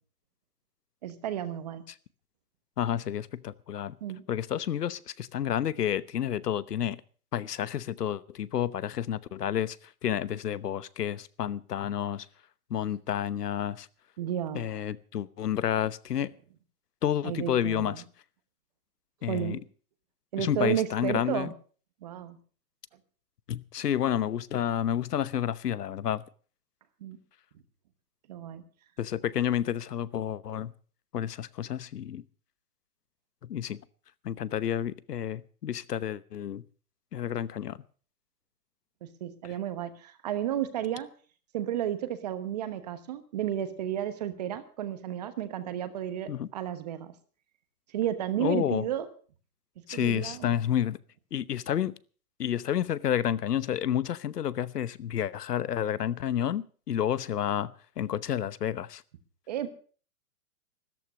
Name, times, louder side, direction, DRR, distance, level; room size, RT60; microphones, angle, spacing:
voice 1, 1.0-1.8 4.0-4.2 14.2-14.7 17.2-18.0 19.3-19.6 20.3-21.5 22.0-22.4 27.0-27.2 28.3-28.6 39.0-41.1 41.5-47.1 47.9-49.1 49.9-50.5 59.5-59.7, right 11 dB, 25° right, 1.1 m, -32 dB
voice 2, 2.8-4.0 4.3-7.0 7.3-12.3 12.7-13.9 14.5-16.3 17.0-18.0 19.2-19.6 20.4-21.5 23.5-26.2 29.0-30.7 31.1-32.2 33.4-33.8 34.2-36.6 37.1-37.8 39.4-39.5 46.3-46.5 48.4-48.8 49.9-51.0 51.3-51.9 52.4-59.0, left 10 dB, 85° left, 1.0 m, -30 dB
13.5 x 12.5 x 6.2 m
hypercardioid pair, 170°, 46 cm